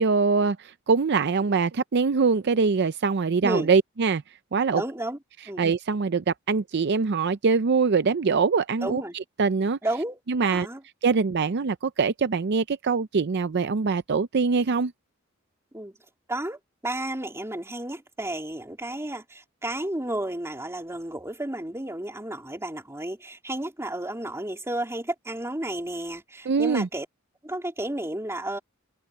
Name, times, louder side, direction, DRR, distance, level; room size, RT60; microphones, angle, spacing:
voice 1, 0.0-4.2 4.5-4.8 5.6-9.8 10.3-10.7 11.0-14.9 26.5-26.9, right 5 dB, 55° right, 0.5 m, -23 dB
voice 2, 4.7-5.2 5.5-5.6 8.8-9.2 9.8-10.8 15.7-15.9 16.3-27.1 27.4-28.6, right 1 dB, 15° right, 3.2 m, -32 dB
head